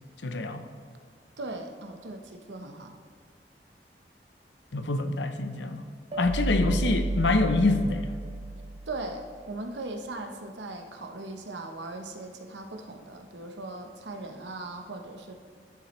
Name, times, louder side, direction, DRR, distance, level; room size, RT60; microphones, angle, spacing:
voice 1, 0.2-0.7 4.7-5.8 6.2-8.1, left 2 dB, 90° left, 8 dB, 0.7 m, -26 dB
voice 2, 1.4-2.9 8.9-15.3, right 2 dB, 85° right, 5 dB, 1.0 m, -39 dB
sound 1, 6.1-9.3, right 2 dB, 30° right, 0.4 m, -32 dB
12.5 x 7.2 x 3.2 m, 2.2 s
head